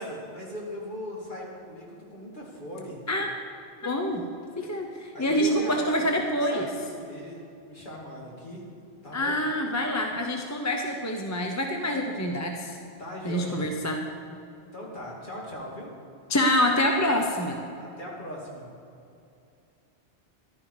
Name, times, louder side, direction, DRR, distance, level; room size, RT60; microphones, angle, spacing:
voice 1, 0.0-3.0 5.1-8.6 9.0-9.4 13.0-13.6 14.7-15.9 17.8-18.7, equal, 50° left, -4 dB, 3.0 m, -39 dB
voice 2, 3.8-4.2 4.6-6.7 9.1-12.8 13.2-14.0 16.3-17.6, equal, 15° left, 2 dB, 0.9 m, -26 dB
14.0 x 12.0 x 5.0 m, 2.7 s
omnidirectional pair, 1.1 m